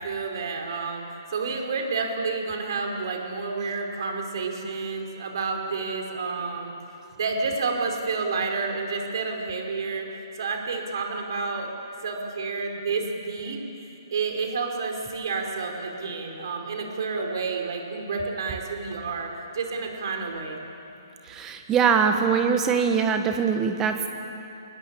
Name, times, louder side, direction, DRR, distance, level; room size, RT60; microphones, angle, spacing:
voice 1, 0.0-6.7 7.2-10.1 10.4-11.7 12.0-13.6 14.1-20.6, right 4 dB, 60° right, 2 dB, 4.8 m, -30 dB
voice 2, 21.3-24.1, right 6 dB, 20° right, 6 dB, 1.6 m, -22 dB
24.5 x 19.5 x 8.7 m, 3.0 s
figure-of-eight pair, 135°, 2 cm